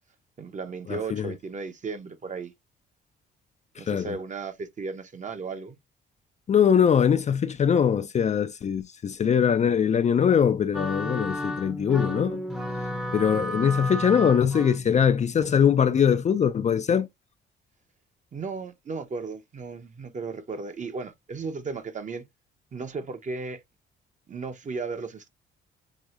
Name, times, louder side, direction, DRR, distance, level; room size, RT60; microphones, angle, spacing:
voice 1, 0.4-2.5 3.8-5.8 18.3-22.2 22.7-23.6 24.3-25.3, right 4 dB, 40° right, 0.8 m, -35 dB
voice 2, 0.9-1.3 3.8-4.1 6.5-12.4 13.1-17.1, left 7 dB, 35° left, 0.4 m, -22 dB
sound 1, 10.7-16.5, equal, 5° right, 0.7 m, -33 dB
6.1 x 2.7 x 2.5 m
cardioid pair, 90°, 20 cm